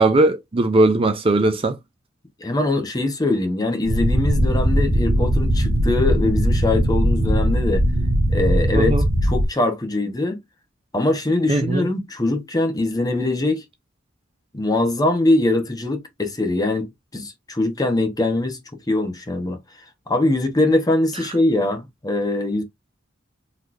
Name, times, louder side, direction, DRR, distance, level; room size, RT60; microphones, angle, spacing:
voice 1, 0.0-1.8 8.8-9.0 11.5-11.9, right 2 dB, 30° right, 0.5 m, -18 dB
voice 2, 2.4-7.8 8.3-8.9 9.2-10.4 10.9-13.6 14.5-18.6 18.9-19.6 20.1-22.6, left 2 dB, 20° left, 0.9 m, -22 dB
sound 1, 3.8-9.5, equal, 65° right, 1.0 m, -19 dB
4.0 x 3.1 x 2.5 m
head